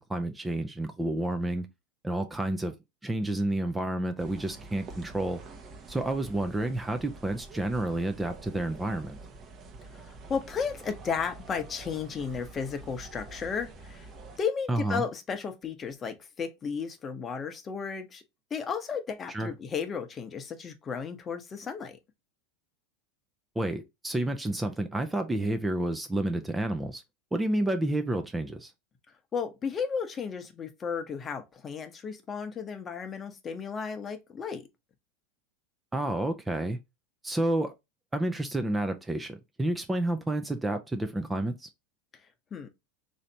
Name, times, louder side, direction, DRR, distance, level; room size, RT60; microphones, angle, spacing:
voice 1, 0.0-1.7 2.0-2.7 3.0-5.4 5.9-9.2 14.7-15.0 19.3-19.5 23.6-27.0 27.3-28.7 35.9-36.8 37.2-37.7 38.1-41.7, right 1 dB, 10° right, 0.4 m, -30 dB
sound 1, 4.2-14.4, right 3 dB, 35° right, 0.8 m, -47 dB
voice 2, 9.9-14.1 14.4-18.2 18.5-22.0 29.3-34.6 42.5-42.7, left 6 dB, 25° left, 0.7 m, -34 dB
3.2 x 2.7 x 3.9 m
hypercardioid pair, 110°, 0 cm